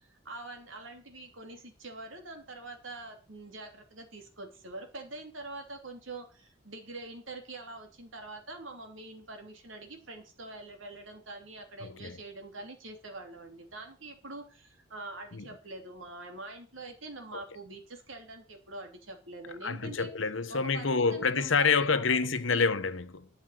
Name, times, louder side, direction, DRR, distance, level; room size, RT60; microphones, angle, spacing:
voice 1, 0.0-20.1 20.5-22.7, right 2 dB, 80° right, 2.9 m, -45 dB
voice 2, 11.8-12.2 15.3-15.5 17.3-17.4 19.6-23.3, left 5 dB, 80° left, 1.1 m, -28 dB
11.5 x 7.2 x 6.5 m
head